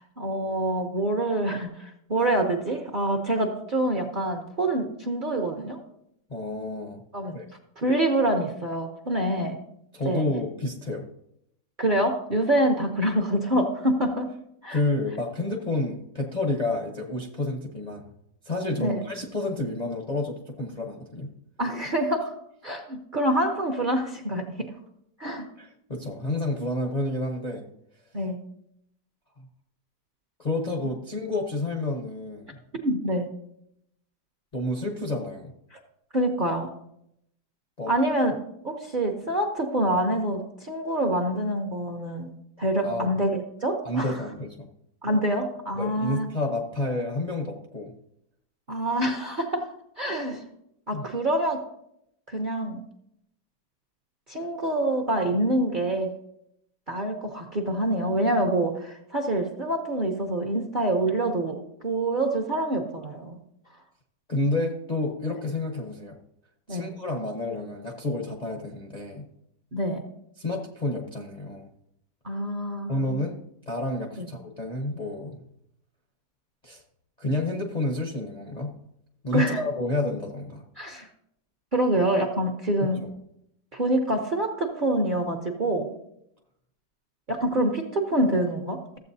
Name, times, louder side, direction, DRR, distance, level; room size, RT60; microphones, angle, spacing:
voice 1, 0.0-5.8 7.1-7.4 7.8-9.6 10.0-10.2 11.8-14.3 14.6-14.8 18.8-19.0 21.6-22.3 22.6-24.7 25.2-25.5 28.1-28.4 32.8-33.3 35.7-35.8 36.1-36.7 37.9-38.4 38.6-42.3 42.6-44.2 45.0-46.3 48.7-49.7 50.0-50.4 50.9-51.6 52.3-52.8 54.3-56.1 56.9-63.4 66.7-66.9 69.7-70.0 72.2-73.1 74.2-74.3 79.3-79.6 80.8-81.1 81.7-83.1 83.7-86.0 87.3-89.0, right 1 dB, 45° right, 2 dB, 0.7 m, -26 dB
voice 2, 6.3-7.0 7.3-7.4 9.9-11.1 14.7-18.1 18.4-21.3 25.6-27.7 30.4-32.6 34.5-35.5 37.8-37.9 42.8-43.1 43.8-44.7 45.8-47.9 50.9-51.1 64.3-66.2 66.7-69.3 70.4-71.7 72.9-73.4 73.7-75.4 76.6-76.8 77.2-78.7 79.2-80.6 82.8-83.1, left 2 dB, 40° left, 1 dB, 0.6 m, -30 dB
14.0 x 7.8 x 2.7 m, 0.76 s
omnidirectional pair, 1.9 m